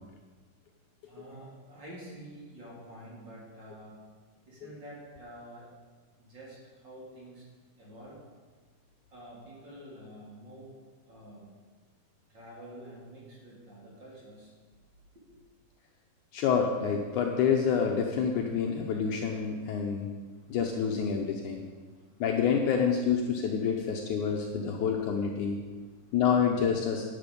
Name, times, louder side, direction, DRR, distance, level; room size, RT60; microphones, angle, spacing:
voice 1, 1.1-4.0 4.5-5.7 6.2-7.5 7.8-8.2 9.1-10.8 11.1-11.5 12.3-14.5 15.3-15.4 20.2-20.6 21.5-22.2 25.7-26.1, right 1 dB, 35° right, -5 dB, 3.2 m, -48 dB
voice 2, 16.3-20.1 20.5-21.6 22.2-25.6 26.1-27.1, left 6 dB, 75° left, 2 dB, 2.0 m, -27 dB
12.0 x 9.2 x 5.3 m, 1.4 s
omnidirectional pair, 4.1 m